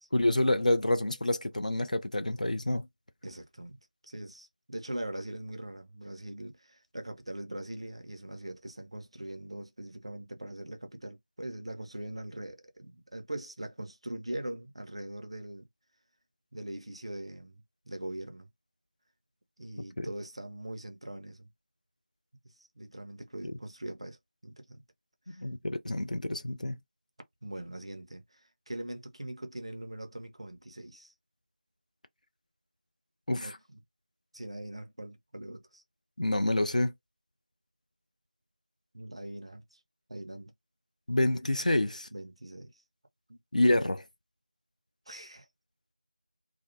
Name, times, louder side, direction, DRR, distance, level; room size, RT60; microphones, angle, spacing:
voice 1, 0.1-2.9 20.0-20.1 25.3-26.8 33.3-33.5 36.2-36.9 41.1-42.1 43.5-44.0, left 1 dB, 50° left, 0.4 m, -27 dB
voice 2, 3.2-3.8 4.0-15.7 16.5-18.5 19.6-21.5 22.4-24.2 24.4-24.8 25.3-25.5 27.4-31.1 33.3-33.8 34.3-35.8 38.9-39.8 40.1-40.5 42.1-42.8 43.3-43.4 45.1-45.5, right 1 dB, 35° right, 0.4 m, -42 dB
2.4 x 2.1 x 2.5 m
figure-of-eight pair, 170°, 5 cm